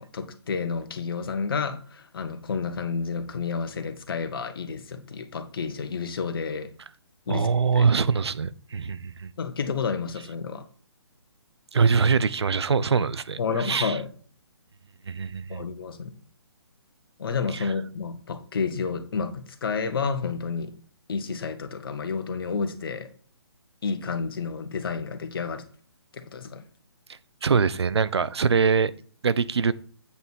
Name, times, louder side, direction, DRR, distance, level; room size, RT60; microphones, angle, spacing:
voice 1, 0.0-6.7 7.3-7.9 9.4-10.6 13.4-14.1 15.5-16.1 17.2-20.7 21.1-23.1 23.8-25.6 26.1-26.6, left 5 dB, 55° left, 1.4 m, -30 dB
voice 2, 7.3-9.3 11.7-13.4 13.6-13.9 15.1-15.6 27.4-28.9 29.2-29.7, right 5 dB, 70° right, 0.6 m, -23 dB
8.3 x 5.4 x 4.6 m
figure-of-eight pair, 140°, 14 cm